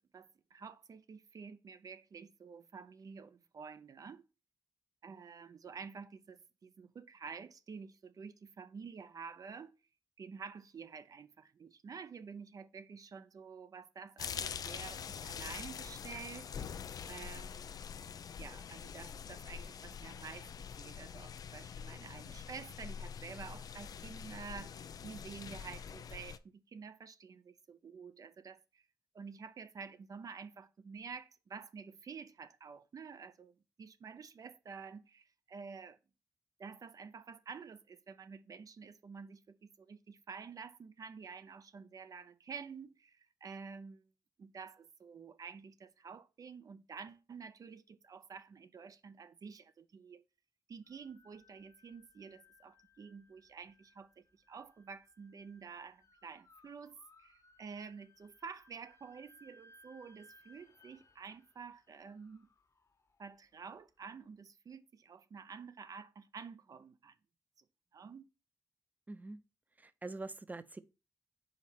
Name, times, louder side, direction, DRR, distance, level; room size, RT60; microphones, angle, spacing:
voice 1, 0.1-4.2 5.0-9.7 10.2-16.7 17.1-17.8 18.4-20.5 20.8-28.8 29.1-36.0 36.6-44.1 44.4-50.2 50.7-62.5 63.2-67.2 67.9-68.3, right 5 dB, 70° right, 0.6 m, -50 dB
sound 1, 14.2-26.4, left 7 dB, 90° left, 0.4 m, -45 dB
sound 2, 50.8-63.9, left 2 dB, 55° left, 1.4 m, -66 dB
voice 2, 69.1-69.4 69.8-70.8, right 2 dB, 25° right, 0.6 m, -44 dB
5.2 x 4.1 x 5.9 m
cardioid pair, 60°, 6 cm